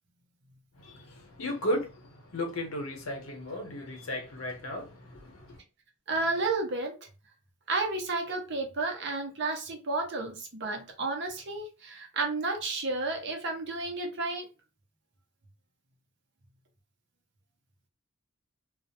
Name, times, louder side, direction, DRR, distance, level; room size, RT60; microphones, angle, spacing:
voice 1, 0.8-5.6, left 1 dB, 90° left, 0.8 m, -35 dB
voice 2, 6.1-6.9 7.7-14.5, right 3 dB, 60° right, 0.7 m, -31 dB
2.4 x 2.0 x 2.7 m
head